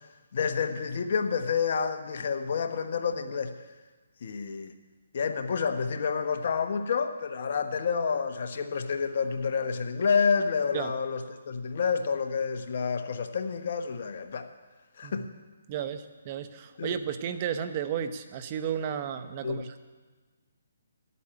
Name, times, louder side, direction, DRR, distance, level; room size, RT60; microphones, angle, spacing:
voice 1, 0.3-3.5 4.2-4.7 5.1-14.5 15.0-15.3 16.8-17.0 19.4-19.7, left 5 dB, 55° left, 7 dB, 1.2 m, -29 dB
voice 2, 15.7-19.8, right 8 dB, 35° right, 10 dB, 0.8 m, -33 dB
12.5 x 8.3 x 8.7 m, 1.3 s
hypercardioid pair, 150°, 0 cm